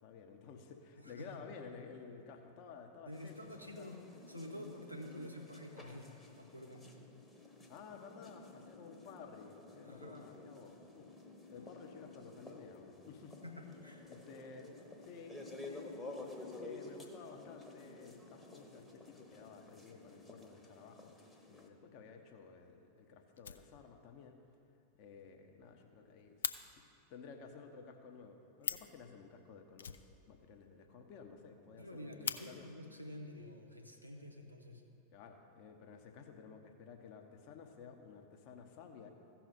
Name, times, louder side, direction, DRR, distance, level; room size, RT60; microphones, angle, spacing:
voice 1, 0.0-3.9 7.7-11.1 11.5-13.4 14.0-14.7 15.0-21.1 21.5-24.4 25.0-26.4 26.7-26.8 27.1-32.7 35.1-39.1, left 5 dB, 45° left, 4 dB, 0.9 m, -54 dB
voice 2, 1.0-1.4 3.1-4.0 4.3-6.8 9.8-10.3 13.4-14.0 31.8-34.8, left 1 dB, 90° left, 3 dB, 0.8 m, -49 dB
sound 1, 3.1-21.7, left 2 dB, 10° left, 1.0 m, -52 dB
Fire, 22.2-22.3 22.6-22.7 23.0-23.1 23.3-24.2 24.5-24.6 24.9-25.0 25.3-25.4 25.6-26.6 28.3-28.4 28.6-29.0 29.8-30.7 31.0-31.1 31.4-31.5 31.9-32.4 33.4-33.5 34.2-34.8, left 7 dB, 65° left, 0.4 m, -42 dB
15.5 x 5.9 x 4.2 m, 2.6 s
figure-of-eight pair, 90°, 0 cm